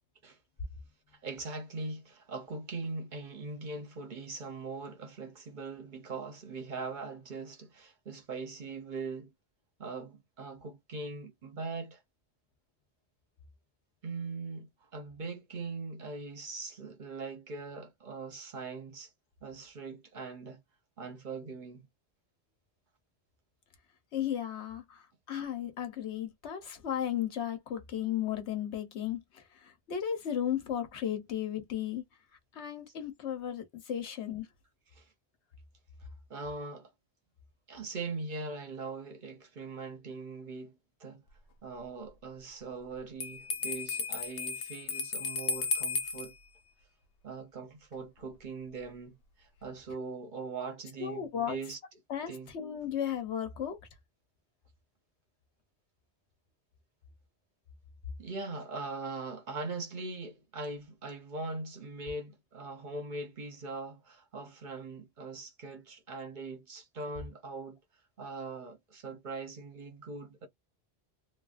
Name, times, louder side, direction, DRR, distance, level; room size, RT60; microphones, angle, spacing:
voice 1, 1.2-9.3 9.8-12.0 14.0-19.1 19.4-20.6 21.0-21.9 34.9-35.1 36.3-36.9 37.7-41.2 41.6-46.3 47.2-51.8 52.3-52.5 58.2-67.8 68.2-70.5, right 3 dB, 50° right, 0.9 m, -41 dB
voice 2, 24.1-25.0 25.3-32.0 32.5-34.5 51.0-51.6 52.1-53.8, left 10 dB, 90° left, 1.2 m, -35 dB
Bell, 43.2-46.3, left 4 dB, 65° left, 0.8 m, -34 dB
3.1 x 2.4 x 2.5 m
omnidirectional pair, 1.1 m